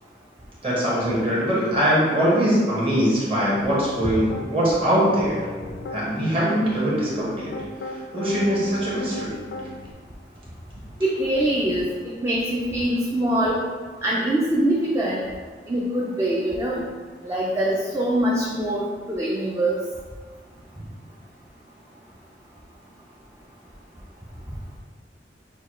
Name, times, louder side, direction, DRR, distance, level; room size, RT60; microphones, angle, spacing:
voice 1, 0.6-5.5 5.9-7.5 8.1-9.3, equal, 30° right, -7 dB, 1.3 m, -22 dB
Piano, 3.4-4.5 4.9-6.0 6.7-9.9, left 2 dB, 85° left, 0.4 m, -36 dB
voice 2, 11.0-11.8 12.2-13.6 14.0-15.2 15.7-16.8 17.2-19.8, right 1 dB, 15° right, -6 dB, 0.4 m, -23 dB
6.2 x 2.3 x 3.0 m, 1.5 s
head